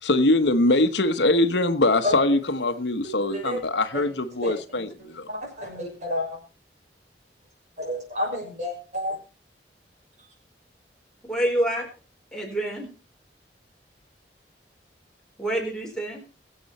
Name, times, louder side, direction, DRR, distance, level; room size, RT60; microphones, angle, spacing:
voice 1, 0.0-5.3, left 2 dB, 80° left, 1.2 m, -22 dB
voice 2, 3.0-3.6 3.9-4.1 4.4-4.8 5.3-6.4 7.8-9.2, left 1 dB, 40° right, 6.0 m, -30 dB
voice 3, 11.2-11.9 12.3-12.9 15.4-16.2, right 1 dB, 5° left, 4.4 m, -27 dB
23.0 x 7.7 x 4.3 m
head